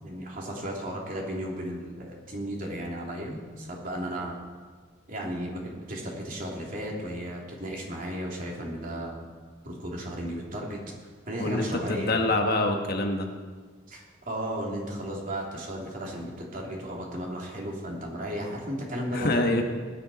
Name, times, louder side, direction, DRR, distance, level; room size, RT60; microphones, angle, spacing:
voice 1, 0.0-4.4 5.1-9.2 9.6-10.8 11.3-12.3 13.9-19.6, equal, 45° right, -2 dB, 3.1 m, -34 dB
voice 2, 11.4-13.3 19.1-19.6, left 2 dB, 55° left, 3 dB, 1.5 m, -25 dB
19.5 x 10.0 x 4.3 m, 1.5 s
head